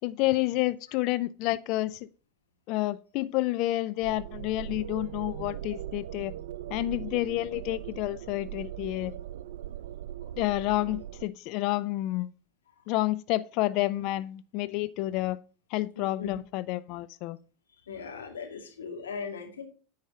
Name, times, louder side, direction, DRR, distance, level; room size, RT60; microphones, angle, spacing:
voice 1, 0.0-2.1 2.7-6.3 6.7-9.1 10.4-12.3 12.9-15.4 15.7-17.4, left 17 dB, 55° left, 0.4 m, -29 dB
sound 1, 4.0-11.2, right 12 dB, 75° right, 0.5 m, -40 dB
voice 2, 17.9-19.6, left 5 dB, 85° left, 2.4 m, -38 dB
9.1 x 4.8 x 5.6 m
hypercardioid pair, 95°, 0 cm